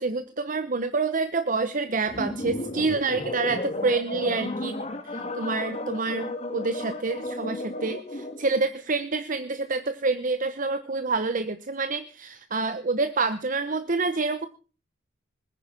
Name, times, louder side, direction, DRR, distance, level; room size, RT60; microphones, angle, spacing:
voice 1, 0.0-4.8 5.0-14.5, right 3 dB, 45° right, 10 dB, 1.0 m, -27 dB
sound 1, 2.1-8.5, left 2 dB, 35° left, 2.0 m, -33 dB
21.0 x 9.8 x 5.9 m, 0.37 s
head